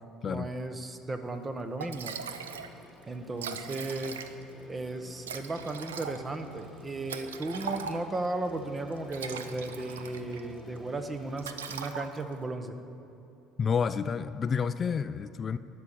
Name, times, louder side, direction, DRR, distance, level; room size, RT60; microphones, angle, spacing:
voice 1, 0.2-2.2 3.1-4.1 4.7-12.8, right 2 dB, 25° right, 8 dB, 1.0 m, -35 dB
Liquid, 1.4-1.5 1.8-2.7 3.0-3.1 3.3-4.6 5.2-8.3 8.9-10.4 10.8-11.0 11.4-12.4, right 6 dB, 90° right, 0.5 m, -40 dB
sound 1, 2.3-11.8, left 1 dB, 5° right, 2.0 m, -53 dB
voice 2, 13.6-15.6, left 6 dB, 40° left, 13 dB, 0.3 m, -29 dB
11.5 x 5.2 x 8.5 m, 2.9 s
hypercardioid pair, 65°, 0 cm